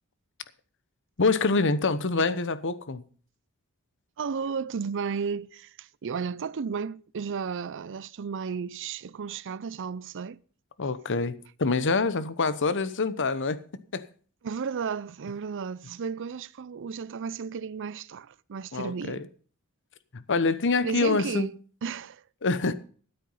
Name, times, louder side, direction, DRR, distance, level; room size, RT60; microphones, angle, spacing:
voice 1, 1.2-3.0 10.8-13.6 13.9-14.1 18.7-19.3 20.1-21.5 22.4-22.7, left 3 dB, 55° left, 1.0 m, -26 dB
voice 2, 4.2-10.4 14.4-19.3 20.8-22.2, right 6 dB, 55° right, 0.5 m, -33 dB
13.0 x 9.3 x 5.6 m
head